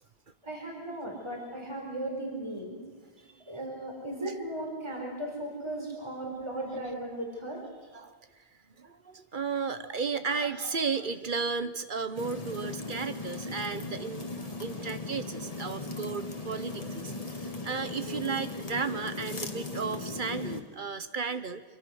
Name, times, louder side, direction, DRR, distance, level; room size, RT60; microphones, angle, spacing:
voice 1, 0.4-2.8 3.5-7.6, right 1 dB, 25° right, 0 dB, 4.4 m, -36 dB
voice 2, 8.8-21.6, right 5 dB, 50° right, 11 dB, 1.1 m, -34 dB
sound 1, 12.2-20.6, left 3 dB, 35° left, 1.8 m, -38 dB
25.5 x 23.5 x 6.4 m, 1.5 s
omnidirectional pair, 1.1 m